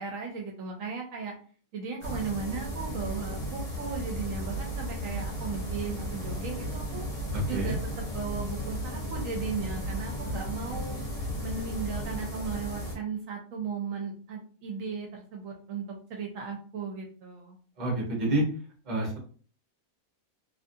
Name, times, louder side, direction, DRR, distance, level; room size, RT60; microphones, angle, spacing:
voice 1, 0.0-1.3 1.7-7.0 7.4-11.0 11.4-15.8 16.1-17.6, right 5 dB, 75° right, 0 dB, 1.0 m, -36 dB
sound 1, 2.0-13.0, equal, 55° left, 1.3 m, -34 dB
voice 2, 7.3-7.8 17.8-18.4 18.9-19.2, right 1 dB, 35° right, -1 dB, 1.1 m, -28 dB
2.8 x 2.5 x 2.6 m, 0.43 s
omnidirectional pair, 1.4 m